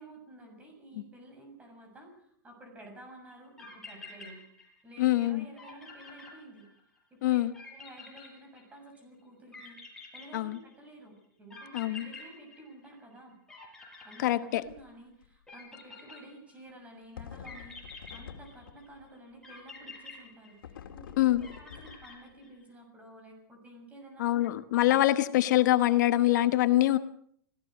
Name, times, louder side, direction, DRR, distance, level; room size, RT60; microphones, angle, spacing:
voice 1, 0.0-4.4 4.8-6.7 7.1-13.4 14.0-21.3 21.6-24.3 24.8-25.0, right 1 dB, 10° right, 6.9 m, -51 dB
sound 1, 3.3-3.4 3.6-4.9 5.2-5.3 5.6-7.0 7.5-9.0 9.5-10.9 11.5-13.2 13.5-14.9 15.5-16.7 17.4-18.9 19.4-21.0 21.4-22.6, left 3 dB, 5° left, 7.0 m, -48 dB
voice 2, 5.0-5.4 7.2-7.5 10.3-10.6 11.7-12.1 14.2-14.6 21.2-21.4 24.2-27.0, left 15 dB, 60° left, 1.1 m, -24 dB
sound 2, 14.6-14.9 15.2-15.3 17.2-19.1 20.6-22.4, left 8 dB, 90° left, 2.4 m, -48 dB
25.0 x 17.5 x 6.4 m
supercardioid pair, 155°, 11 cm